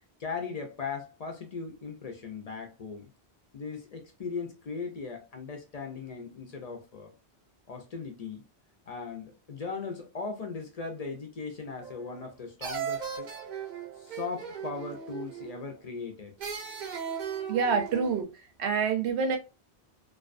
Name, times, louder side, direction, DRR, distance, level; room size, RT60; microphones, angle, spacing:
voice 1, 0.2-3.1 3.5-7.1 7.7-8.4 8.9-13.3 14.0-16.3, left 4 dB, 45° left, 0.5 m, -38 dB
sound 1, 11.8-12.3 12.6-15.7 16.4-18.2, right 7 dB, 55° right, 0.6 m, -37 dB
voice 2, 17.5-18.3 18.6-19.4, right 5 dB, 85° right, 0.9 m, -27 dB
2.5 x 2.2 x 2.4 m
omnidirectional pair, 1.1 m